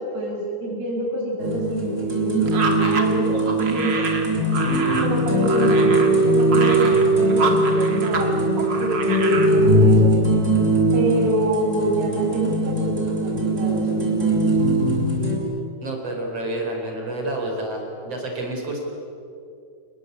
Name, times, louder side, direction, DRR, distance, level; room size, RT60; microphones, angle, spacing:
voice 1, 0.0-4.1 5.0-8.5 8.8-10.1 10.9-14.4 15.2-15.3, right 1 dB, 80° right, -2 dB, 9.4 m, -27 dB
sound 1, 1.4-15.4, right 1 dB, 15° right, 4.3 m, -20 dB
sound 2, 2.5-8.3 8.6-9.5, right 3 dB, 50° right, 1.3 m, -28 dB
voice 2, 15.8-18.8, right 1 dB, 30° right, 1 dB, 5.3 m, -29 dB
29.5 x 20.5 x 8.5 m, 2.5 s
omnidirectional pair, 6.0 m